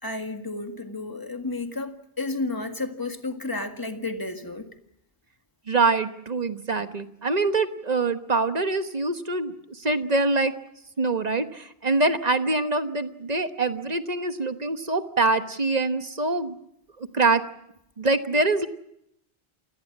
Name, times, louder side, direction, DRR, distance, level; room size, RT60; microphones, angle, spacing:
voice 1, 0.0-4.7, left 2 dB, 20° left, 5 dB, 1.8 m, -32 dB
voice 2, 5.7-9.5 9.8-10.5 11.0-16.6 17.1-17.4 18.0-18.7, right 3 dB, 40° right, 9 dB, 1.3 m, -24 dB
28.5 x 17.5 x 7.3 m, 0.78 s
omnidirectional pair, 1.1 m